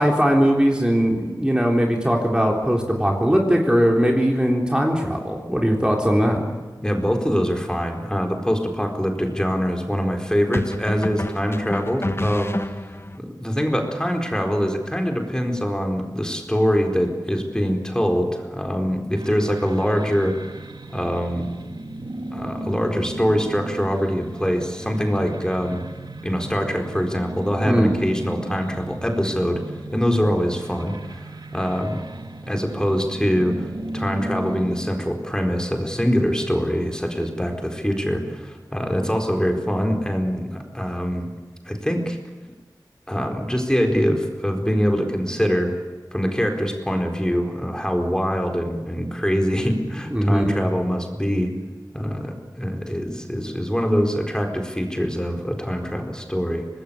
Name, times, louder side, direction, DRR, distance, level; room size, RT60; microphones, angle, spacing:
voice 1, 0.0-6.4 27.6-27.9 50.1-50.4, equal, 10° right, 0 dB, 3.6 m, -19 dB
voice 2, 6.8-12.5 13.1-20.4 20.9-21.5 22.3-25.8 26.2-29.6 29.9-32.0 32.5-33.7 33.9-41.3 41.7-42.2 43.1-45.8 46.1-51.5 51.9-56.7, equal, 10° left, 3 dB, 4.3 m, -24 dB
sound 1, 7.9-8.1 10.5-13.2, left 1 dB, 30° left, 1.1 m, -29 dB
sound 2, 19.1-34.9, right 1 dB, 70° right, 2.1 m, -35 dB
25.5 x 20.0 x 8.8 m, 1.3 s
wide cardioid pair, 55°, 8 cm